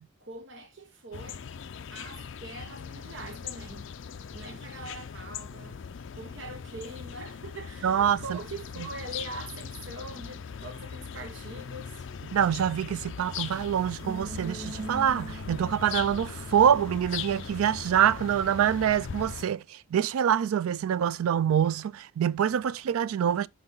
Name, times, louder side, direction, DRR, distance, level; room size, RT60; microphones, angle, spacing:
voice 1, 0.2-1.4 1.9-3.9 4.3-5.8 6.1-12.0, right 2 dB, 60° right, 1.0 m, -42 dB
sound 1, 1.1-19.5, left 7 dB, 65° left, 0.4 m, -40 dB
voice 2, 7.8-8.4 12.3-23.5, right 9 dB, 90° right, 0.3 m, -25 dB
sound 2, 14.0-17.9, right 3 dB, 15° right, 1.6 m, -42 dB
5.7 x 4.9 x 3.8 m
head